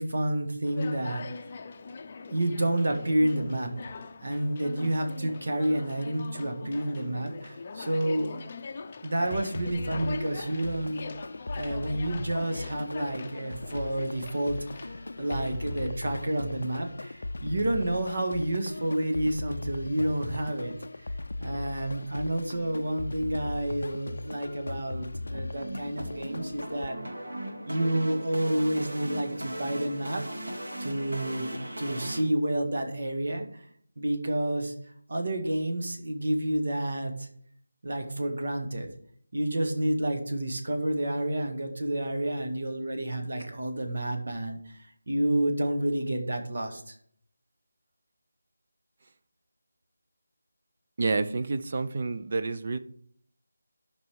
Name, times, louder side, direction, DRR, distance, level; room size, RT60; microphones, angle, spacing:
voice 1, 0.0-1.5 2.3-3.7 4.2-8.4 9.0-11.0 11.5-20.8 21.4-27.0 27.7-30.5 30.8-33.7 34.0-34.7 35.1-37.3 37.8-38.9 39.3-47.0, right 1 dB, 60° right, 1.9 m, -29 dB
Conversation, 0.6-15.9, left 4 dB, 25° left, 0.6 m, -43 dB
sound 1, 9.2-26.9, left 2 dB, 70° left, 0.4 m, -38 dB
sound 2, 25.3-32.2, right 1 dB, 75° right, 3.1 m, -38 dB
voice 2, 51.0-52.8, right 3 dB, 40° right, 0.6 m, -29 dB
12.5 x 5.4 x 4.7 m
figure-of-eight pair, 170°, 0 cm